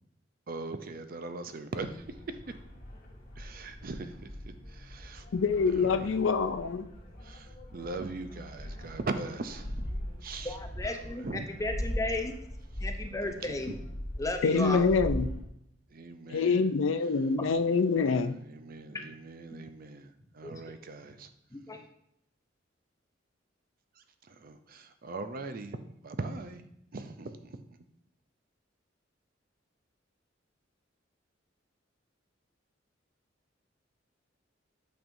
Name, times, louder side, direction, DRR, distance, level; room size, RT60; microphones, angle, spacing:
voice 1, 0.5-1.9 3.4-4.1 4.9-5.2 5.7-6.1 7.3-7.4 7.7-9.7 10.2-10.5 11.2-11.5 13.2-13.3 14.5-14.9 15.9-16.7 18.1-20.1 20.4-21.3 24.4-25.8 26.0-26.6 26.9-27.5, right 3 dB, 50° right, 9 dB, 0.5 m, -39 dB
sound 1, 1.8-15.4, equal, 45° left, 2.1 m, -40 dB
voice 2, 5.3-6.9 14.4-15.3 16.3-18.3, left 5 dB, 85° left, 11 dB, 0.5 m, -26 dB
voice 3, 10.4-12.3 12.8-13.8 14.2-14.9 17.4-17.5 18.9-19.1 20.4-20.5 21.5-21.8, left 2 dB, 15° left, 4 dB, 0.6 m, -34 dB
8.7 x 5.3 x 2.6 m, 0.76 s
head